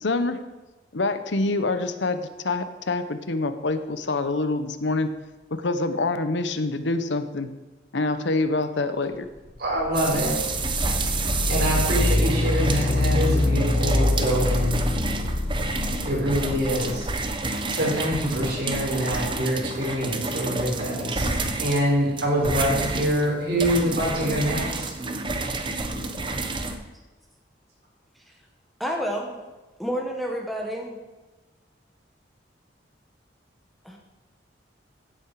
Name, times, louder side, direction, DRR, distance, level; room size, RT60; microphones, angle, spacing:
voice 1, 0.0-0.4 0.9-5.1 5.6-7.5 7.9-9.3, left 3 dB, 75° left, 10 dB, 0.9 m, -26 dB
sound 1, 9.4-17.4, left 1 dB, 40° left, 0.8 m, -25 dB
voice 2, 9.6-10.4 11.5-14.9 16.0-17.1 17.7-21.3 21.6-24.9, equal, 55° right, -3 dB, 4.8 m, -25 dB
sound 2, 9.9-26.8, right 3 dB, 25° right, 1.0 m, -29 dB
voice 3, 28.8-29.4 29.8-31.0 33.8-34.0, equal, ahead, 0 dB, 1.2 m, -29 dB
15.5 x 8.0 x 4.9 m, 1.2 s
head